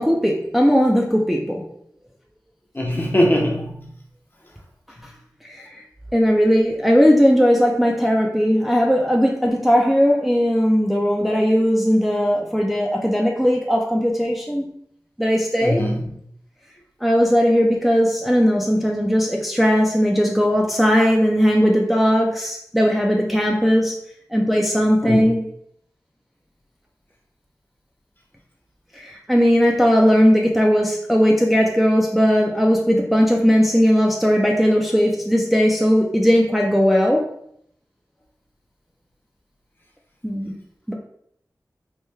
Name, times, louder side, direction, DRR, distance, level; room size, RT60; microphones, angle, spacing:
voice 1, 0.0-1.7 5.4-5.8 6.1-14.7 15.2-15.9 17.0-24.0 24.3-25.4 28.9-37.3 40.2-40.5 40.9-41.0, equal, ahead, 0.4 m, -18 dB
voice 2, 2.7-3.9 15.6-16.1 25.0-25.3, equal, 30° left, 0.7 m, -21 dB
3.1 x 2.2 x 3.2 m
wide cardioid pair, 50°, 7 cm